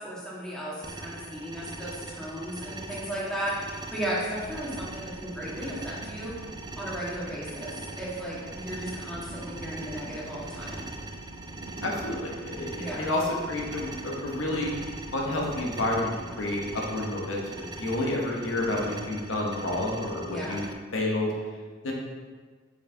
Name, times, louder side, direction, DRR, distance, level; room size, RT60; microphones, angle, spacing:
voice 1, 0.0-6.3 6.8-10.8 12.7-13.1 20.3-20.6, equal, 5° left, -7 dB, 1.6 m, -35 dB
sound 1, 0.8-20.7, right 2 dB, 20° right, 0.4 m, -41 dB
sound 2, 4.3-16.8, right 2 dB, 70° right, 0.6 m, -45 dB
voice 2, 11.8-14.7 15.1-16.1 16.4-20.7 20.9-21.3 21.8-21.9, left 1 dB, 85° left, -2 dB, 1.2 m, -29 dB
6.2 x 5.7 x 3.5 m, 1.5 s
head